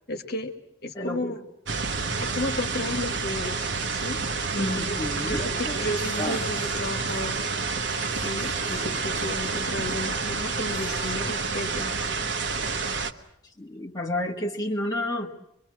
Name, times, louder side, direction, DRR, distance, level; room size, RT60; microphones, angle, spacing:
voice 1, 0.1-0.5 0.8-1.4 2.2-4.2 4.6-5.0 5.2-7.4 8.2-11.9, left 1 dB, 55° left, 8 dB, 1.7 m, -33 dB
voice 2, 0.9-1.4 4.5-5.9 6.2-6.4 13.4-15.3, left 1 dB, 20° left, -1 dB, 1.6 m, -30 dB
sound 1, 1.7-13.1, right 4 dB, 70° right, 1.2 m, -29 dB
sound 2, 3.4-11.8, equal, 45° right, 5.9 m, -44 dB
25.0 x 22.5 x 7.5 m, 0.79 s
head